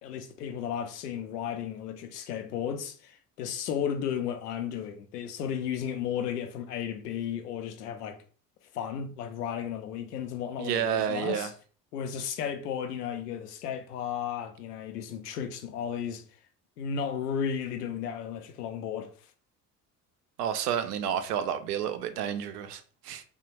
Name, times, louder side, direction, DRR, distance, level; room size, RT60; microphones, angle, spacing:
voice 1, 0.0-8.2 8.7-11.5 11.9-16.2 16.8-19.1, left 8 dB, 80° left, 0.6 m, -34 dB
voice 2, 10.6-11.5 20.4-23.2, right 9 dB, 75° right, 0.5 m, -30 dB
3.2 x 2.1 x 2.9 m
figure-of-eight pair, 55°, 47 cm